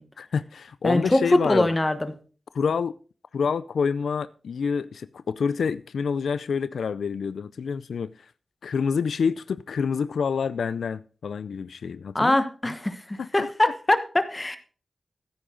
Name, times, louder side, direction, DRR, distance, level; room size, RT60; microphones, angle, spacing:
voice 1, 0.2-1.7 2.5-2.9 3.3-8.1 8.6-12.3 13.2-13.5, left 6 dB, 90° left, 0.4 m, -27 dB
voice 2, 0.8-2.1 12.1-14.6, left 1 dB, 20° left, 1.2 m, -23 dB
15.0 x 8.8 x 3.8 m
wide cardioid pair, 85°, 0 cm